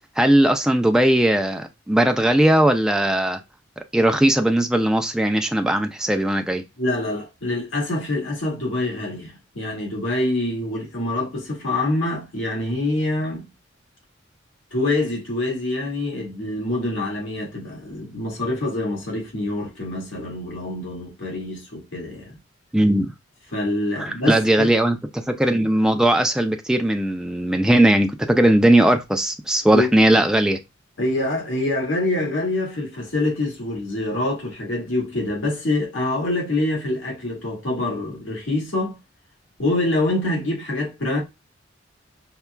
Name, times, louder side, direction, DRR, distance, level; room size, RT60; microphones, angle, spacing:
voice 1, 0.2-3.4 3.9-6.6 22.7-23.1 24.0-30.6, right 1 dB, 5° right, 0.3 m, -18 dB
voice 2, 6.8-13.5 14.7-22.4 23.5-24.7 29.7-29.9 31.0-39.0 39.6-41.2, left 2 dB, 85° left, 1.7 m, -25 dB
5.5 x 2.3 x 2.2 m
head